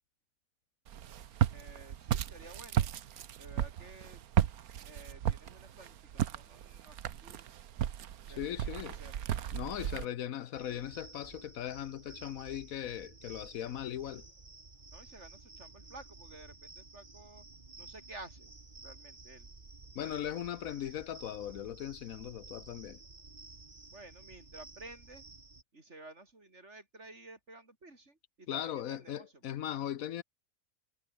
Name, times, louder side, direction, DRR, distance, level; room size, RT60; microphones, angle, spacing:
Walk footsteps, 0.9-10.1, right 10 dB, 90° right, 1.4 m, -34 dB
voice 1, 1.5-2.9 3.4-4.2 4.8-7.5 8.3-9.2 9.8-10.0 14.9-17.5 17.8-18.5 18.8-19.5 23.9-25.2 25.7-29.6, right 2 dB, 50° right, 4.5 m, -53 dB
voice 2, 8.4-9.0 9.5-14.3 19.9-23.0 28.5-30.2, left 11 dB, 75° left, 1.2 m, -39 dB
sound 1, 10.5-25.6, right 3 dB, 35° right, 2.3 m, -53 dB
omnidirectional pair, 1.5 m